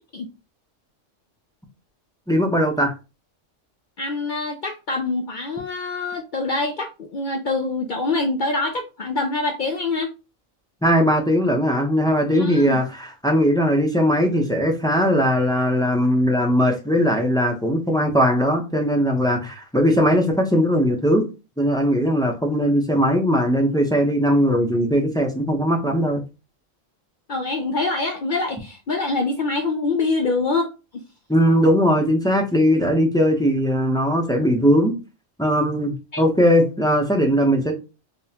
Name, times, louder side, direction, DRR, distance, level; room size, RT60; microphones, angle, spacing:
voice 1, 2.3-2.9 10.8-21.3 21.6-26.2 31.3-34.9 35.4-37.7, equal, 5° left, 0.5 m, -19 dB
voice 2, 4.0-10.1 12.3-12.8 27.3-31.0 36.1-36.2, left 3 dB, 65° left, 0.5 m, -25 dB
5.3 x 2.1 x 2.8 m
omnidirectional pair, 1.3 m